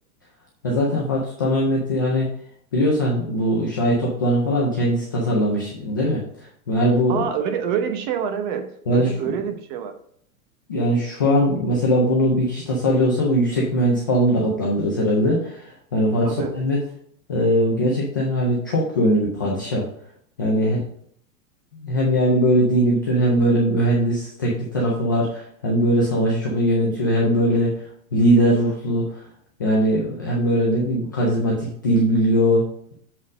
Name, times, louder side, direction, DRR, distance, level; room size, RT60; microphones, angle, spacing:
voice 1, 0.6-2.3 2.7-6.2 6.7-7.3 8.9-9.1 10.7-16.8 17.3-19.8 20.4-20.8 21.7-27.8 28.1-29.2 29.6-32.9, equal, 15° left, -4 dB, 0.3 m, -20 dB
voice 2, 7.1-10.0 16.2-16.5, right 7 dB, 35° right, 8 dB, 0.9 m, -26 dB
7.5 x 3.9 x 6.0 m, 0.64 s
supercardioid pair, 165°, 44 cm